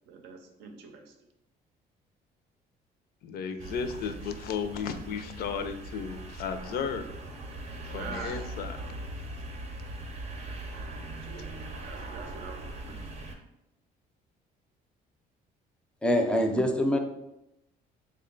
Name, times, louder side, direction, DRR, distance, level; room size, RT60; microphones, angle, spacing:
voice 1, 0.1-1.1 7.9-8.4 11.2-11.5 11.8-13.0, right 5 dB, 85° right, 4 dB, 0.6 m, -44 dB
voice 2, 3.2-7.1 7.9-8.8, left 6 dB, 65° left, 9 dB, 0.4 m, -34 dB
sound 1, 3.6-13.3, right 2 dB, 40° right, 0.6 m, -40 dB
voice 3, 16.0-17.0, equal, 5° left, 4 dB, 0.4 m, -24 dB
3.6 x 2.2 x 3.8 m, 0.88 s
cardioid pair, 110°, 17 cm